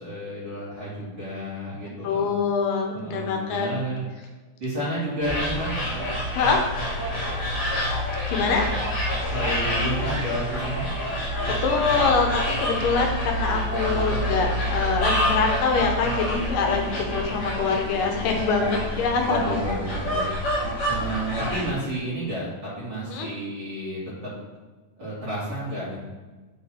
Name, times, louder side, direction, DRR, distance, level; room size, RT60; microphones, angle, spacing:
voice 1, 0.0-2.3 2.9-4.0 4.6-6.1 9.3-10.9 19.3-20.3 20.9-22.5 22.8-24.3 25.0-26.0, right 1 dB, 35° right, -9 dB, 2.9 m, -31 dB
voice 2, 2.0-3.7 6.3-6.6 8.3-8.7 11.3-19.6 23.1-23.3, left 4 dB, 80° left, 2 dB, 2.5 m, -24 dB
sound 1, 5.2-21.7, equal, 50° left, 2.7 m, -27 dB
9.3 x 3.8 x 4.3 m, 1.3 s
omnidirectional pair, 3.8 m